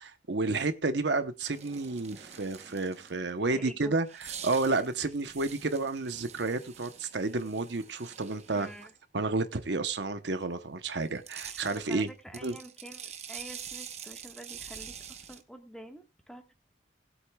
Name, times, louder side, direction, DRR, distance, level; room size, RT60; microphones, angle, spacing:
voice 1, 0.0-8.7 9.1-12.1 12.4-12.6, right 3 dB, 70° right, 0.9 m, -31 dB
sound 1, 1.5-3.3 4.0-8.9 11.0-15.4, right 8 dB, 35° right, 0.9 m, -46 dB
voice 2, 3.5-3.9 8.5-8.9 11.4-16.5, equal, 5° left, 1.4 m, -48 dB
19.5 x 8.1 x 2.3 m
head